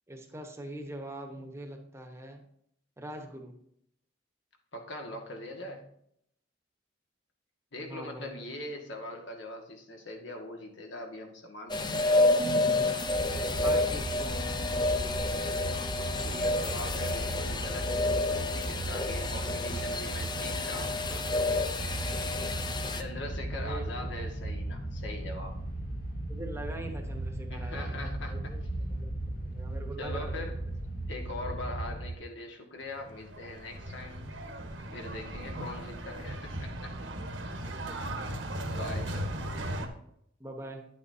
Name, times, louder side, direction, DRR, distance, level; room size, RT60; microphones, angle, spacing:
voice 1, 0.1-2.4 3.0-3.5 7.9-8.2 13.6-14.2 23.5-24.0 26.3-30.6 35.5-35.7 37.7-38.0 40.4-40.9, right 1 dB, 15° right, 4 dB, 1.0 m, -43 dB
voice 2, 4.7-5.9 7.7-12.1 16.2-21.8 22.9-25.6 27.5-28.5 30.0-30.6 31.1-34.3 34.9-37.1 38.6-39.3, left 2 dB, 70° left, 2 dB, 1.7 m, -42 dB
sound 1, 11.7-23.0, left 2 dB, 25° left, 0.6 m, -29 dB
sound 2, 13.1-32.1, right 1 dB, 50° left, 1.3 m, -36 dB
sound 3, 32.9-39.9, right 1 dB, 80° right, 1.3 m, -37 dB
10.0 x 8.5 x 2.7 m, 0.71 s
head